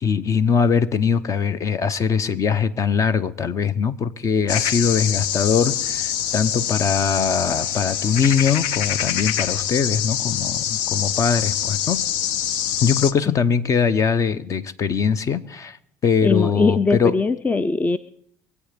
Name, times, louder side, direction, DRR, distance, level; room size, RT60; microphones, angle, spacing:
voice 1, 0.0-12.1 12.8-15.8 16.0-17.1, left 6 dB, 40° left, 0.9 m, -21 dB
sound 1, 4.5-13.1, left 10 dB, 75° left, 0.7 m, -25 dB
voice 2, 16.2-18.0, left 4 dB, 20° left, 0.5 m, -20 dB
24.0 x 8.3 x 5.2 m
supercardioid pair, 80°, 8 cm